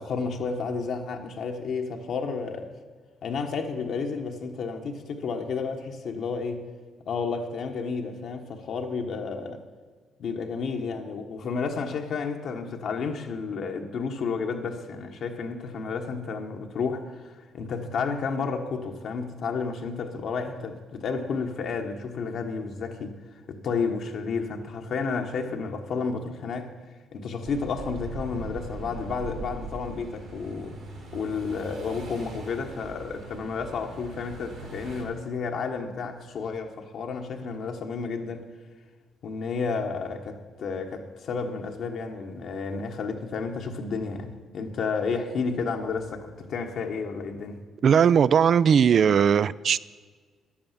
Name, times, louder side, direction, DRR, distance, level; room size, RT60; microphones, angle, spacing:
voice 1, 0.0-2.7 3.2-6.6 7.1-9.6 10.2-23.1 23.5-26.7 27.1-30.8 31.1-38.5 39.2-47.6, left 5 dB, 65° left, 1.2 m, -31 dB
sound 1, 27.4-35.0, right 3 dB, 70° right, 3.6 m, -41 dB
voice 2, 47.8-49.8, right 7 dB, 55° right, 0.3 m, -19 dB
10.5 x 8.6 x 7.4 m
cardioid pair, 90°, 0 cm